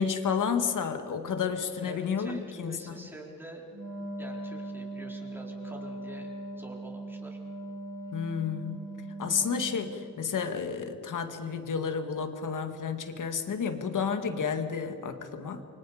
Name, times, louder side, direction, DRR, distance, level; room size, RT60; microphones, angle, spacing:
voice 1, 0.0-3.0 8.1-8.8 9.2-15.6, left 6 dB, 65° left, 7 dB, 2.0 m, -31 dB
voice 2, 1.8-3.6 4.2-6.3 6.6-7.4, right 1 dB, 5° right, -1 dB, 4.2 m, -46 dB
Wind instrument woodwind instrument, 3.7-10.2, right 2 dB, 75° right, 7.5 m, -40 dB
29.5 x 24.0 x 5.1 m, 2.6 s
wide cardioid pair, 115°, 34 cm